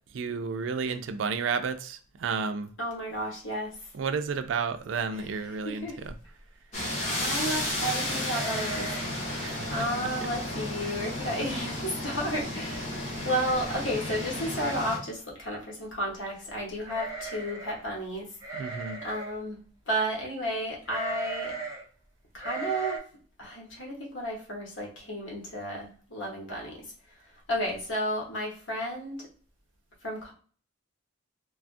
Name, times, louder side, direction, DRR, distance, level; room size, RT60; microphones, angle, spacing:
voice 1, 0.1-2.7 3.9-6.1 9.4-9.7 18.5-19.0, right 5 dB, 75° right, 0.4 m, -31 dB
voice 2, 2.8-3.7 5.1-5.3 5.6-6.0 7.1-8.9 9.7-18.3 19.0-19.6 19.9-21.5 22.3-23.0 23.4-26.9 27.5-29.2 30.0-30.3, equal, 85° left, 1.2 m, -32 dB
sound 1, 6.7-15.0, left 1 dB, 35° left, 1.2 m, -33 dB
sound 2, 8.3-9.2 9.5-9.6 10.1-10.3 10.9-11.0 11.3-11.8 12.1-12.2 13.3-13.4 13.7-14.2 16.8-17.8 18.4-19.4 20.9-21.8 22.4-23.0, right 4 dB, 15° right, 0.6 m, -37 dB
3.3 x 2.3 x 2.5 m
head